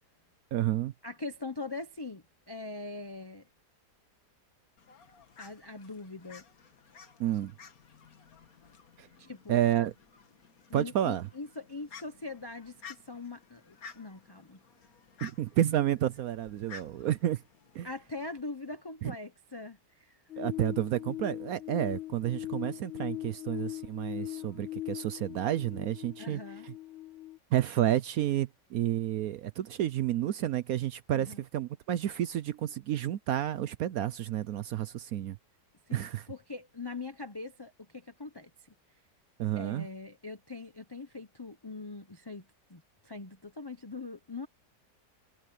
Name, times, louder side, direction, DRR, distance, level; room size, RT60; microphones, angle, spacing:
voice 1, 0.5-0.9 7.2-7.5 9.0-9.1 9.5-9.9 10.7-11.3 15.2-17.4 17.7-17.9 19.0-19.1 20.4-26.7 27.5-35.4 35.9-36.2 39.4-39.9, right 12 dB, 65° right, 1.0 m, -30 dB
voice 2, 1.0-3.5 5.4-6.4 9.2-9.6 10.7-14.6 17.8-20.2 26.2-26.7 31.1-31.4 35.9-38.7 39.6-44.5, left 3 dB, 20° left, 0.6 m, -42 dB
Fowl, 4.8-18.4, left 5 dB, 60° left, 2.0 m, -53 dB
sound 1, 20.3-27.4, left 15 dB, 40° left, 1.7 m, -40 dB
omnidirectional pair, 1.8 m